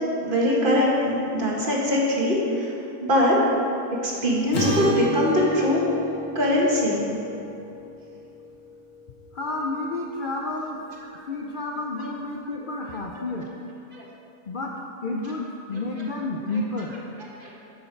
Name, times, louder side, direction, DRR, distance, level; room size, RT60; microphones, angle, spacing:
voice 1, 0.2-2.7 3.0-3.4 4.0-5.8 6.3-7.1 13.9-14.0 17.4-17.5, left 1 dB, 35° right, -4 dB, 1.5 m, -22 dB
Acoustic guitar / Strum, 4.5-8.9, equal, 60° left, 1.7 m, -31 dB
voice 2, 9.3-10.8 11.2-13.5 14.5-14.7 15.0-16.9, left 2 dB, 80° left, -1 dB, 0.4 m, -30 dB
9.6 x 6.8 x 4.4 m, 2.8 s
omnidirectional pair, 1.6 m